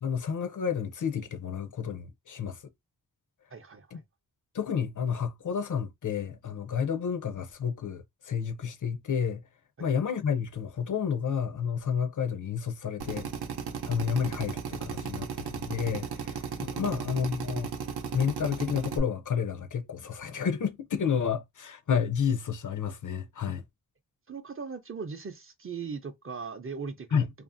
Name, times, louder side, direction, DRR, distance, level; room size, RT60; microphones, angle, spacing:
voice 1, 0.0-2.6 3.9-4.0 4.5-9.4 9.8-13.3 13.9-17.7 18.1-23.6 27.1-27.3, left 7 dB, 55° left, 0.5 m, -30 dB
voice 2, 3.5-4.0 9.8-9.9 16.8-17.0 24.3-27.3, right 5 dB, 35° right, 0.5 m, -39 dB
Drill, 13.0-19.0, right 6 dB, 85° right, 0.6 m, -35 dB
2.5 x 2.4 x 2.5 m
wide cardioid pair, 105°, 38 cm